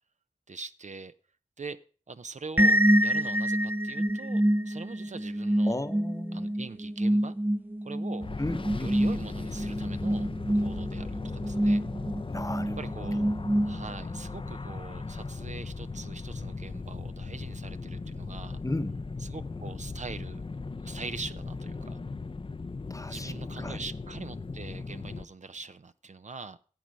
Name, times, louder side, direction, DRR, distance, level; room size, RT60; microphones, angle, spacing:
voice 1, 0.5-1.1 1.6-1.8 2.1-5.8 6.3-7.3 7.8-8.3 8.8-11.8 12.8-13.2 13.6-18.6 19.2-20.4 20.8-22.0 23.1-26.6, right 4 dB, 65° right, 0.6 m, -43 dB
sound 1, 2.6-14.2, right 1 dB, 15° right, 0.4 m, -27 dB
voice 2, 5.7-6.6 8.4-9.0 12.3-13.4 18.6-19.0 22.9-23.8, left 1 dB, 25° left, 0.9 m, -35 dB
sound 2, 8.2-25.2, left 3 dB, 40° left, 0.5 m, -38 dB
10.5 x 7.5 x 5.2 m
wide cardioid pair, 40°, 13 cm